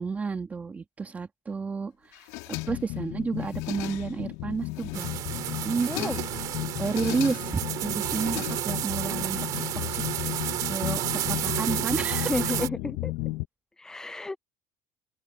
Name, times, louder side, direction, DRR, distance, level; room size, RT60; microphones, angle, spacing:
voice 1, 0.0-5.1 5.6-6.1 6.8-12.4, right 4 dB, 20° right, 2.1 m, -31 dB
sound 1, 2.1-3.0 3.4-4.3 4.6-5.3 5.6-6.4 6.8-7.6 8.0-9.0, left 23 dB, 90° left, 2.3 m, -39 dB
sound 2, 2.5-13.5, left 20 dB, 75° left, 0.8 m, -34 dB
sound 3, 4.9-12.7, right 14 dB, 55° right, 2.4 m, -31 dB
voice 2, 5.9-6.2 12.3-13.1 13.8-14.4, left 2 dB, 10° left, 0.4 m, -31 dB
open air
cardioid pair, 135°, 8 cm